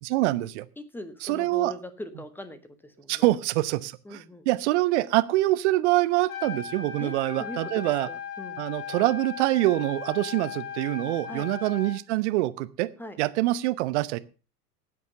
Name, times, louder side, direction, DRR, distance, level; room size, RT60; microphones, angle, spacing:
voice 1, 0.0-0.7 1.2-1.7 3.1-8.1 8.6-12.9 13.2-14.2, right 18 dB, 45° right, 14 dB, 0.9 m, -25 dB
voice 2, 0.8-3.2 4.0-4.4 7.0-7.1 7.4-8.6 11.3-11.5 13.0-13.2, left 1 dB, 5° left, 11 dB, 1.5 m, -41 dB
Trumpet, 6.2-12.0, left 7 dB, 50° left, 2.8 m, -37 dB
12.5 x 8.3 x 6.8 m, 0.35 s
figure-of-eight pair, 85°, 47 cm